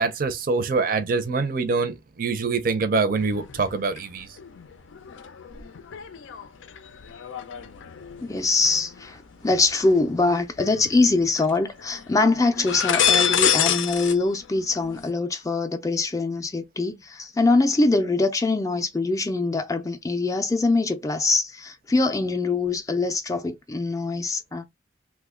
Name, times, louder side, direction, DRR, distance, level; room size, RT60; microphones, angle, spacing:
voice 1, 0.0-4.3, right 4 dB, 45° right, 0.5 m, -24 dB
sound 1, 3.1-4.0 4.4-10.0 10.6-11.5 11.8-12.1 12.5-14.2 14.4-15.1, left 9 dB, 85° left, 0.4 m, -28 dB
voice 2, 8.2-9.2 9.4-24.6, left 3 dB, 15° left, 0.3 m, -23 dB
3.0 x 2.2 x 3.5 m
head